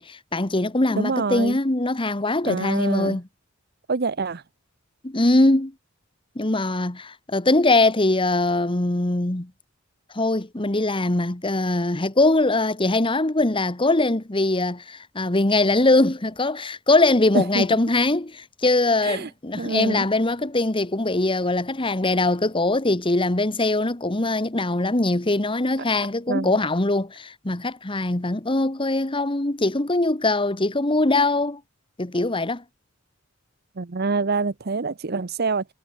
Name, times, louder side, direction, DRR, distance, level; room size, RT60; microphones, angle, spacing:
voice 1, 0.0-3.2 5.0-5.7 6.3-9.5 10.1-31.6 32.0-32.6, left 2 dB, 25° left, 1.3 m, -22 dB
voice 2, 0.9-1.6 2.4-3.2 3.9-4.4 17.3-17.7 19.0-19.3 19.6-20.0 26.3-26.6 33.8-35.6, right 4 dB, 50° right, 0.8 m, -26 dB
head